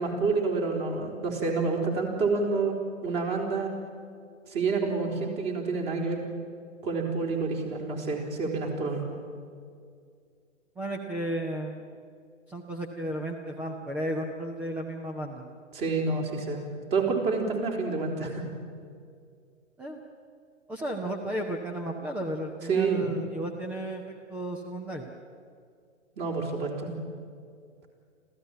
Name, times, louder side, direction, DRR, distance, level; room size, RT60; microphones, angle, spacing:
voice 1, 0.0-2.7 3.0-3.7 4.5-6.2 6.8-9.0 15.7-16.6 16.9-18.4 22.7-23.1 26.2-26.9, right 4 dB, 25° right, 2 dB, 4.1 m, -28 dB
voice 2, 10.8-11.9 12.5-15.4 15.9-16.4 19.8-20.0 20.7-25.1, right 1 dB, 5° right, 2 dB, 0.5 m, -34 dB
26.5 x 15.5 x 8.9 m, 2.2 s
figure-of-eight pair, 120°, 39 cm